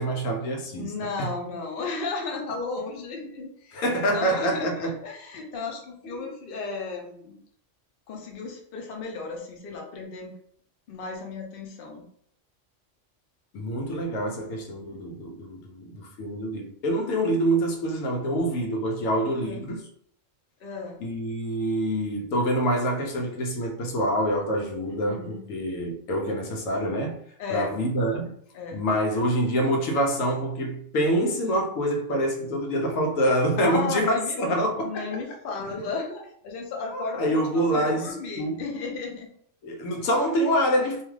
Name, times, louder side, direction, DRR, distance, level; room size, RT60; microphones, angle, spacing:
voice 1, 0.0-0.9 1.2-1.3 3.7-5.0 6.2-6.3 13.5-19.8 21.0-27.2 27.5-28.3 28.7-35.2 36.9-38.6 39.6-41.0, equal, 90° left, 1.0 m, -26 dB
voice 2, 0.8-7.4 8.1-10.3 10.9-12.0 14.7-15.0 19.3-19.6 20.6-21.0 24.9-25.4 27.4-27.8 28.5-28.9 33.6-34.5 34.8-39.3, left 4 dB, 55° left, 0.7 m, -34 dB
2.6 x 2.3 x 3.1 m
omnidirectional pair, 1.3 m